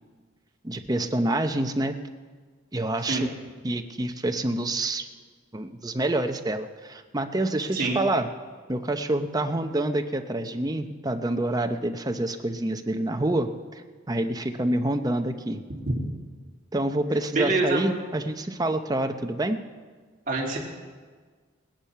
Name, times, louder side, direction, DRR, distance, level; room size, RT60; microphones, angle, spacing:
voice 1, 0.6-2.0 2.7-3.3 3.6-5.1 5.5-8.3 8.7-13.8 14.1-15.6 16.7-19.6, right 1 dB, 20° right, 7 dB, 0.7 m, -27 dB
voice 2, 17.3-17.8 20.3-20.7, right 2 dB, 40° right, -2 dB, 2.8 m, -25 dB
19.0 x 10.5 x 5.8 m, 1.5 s
head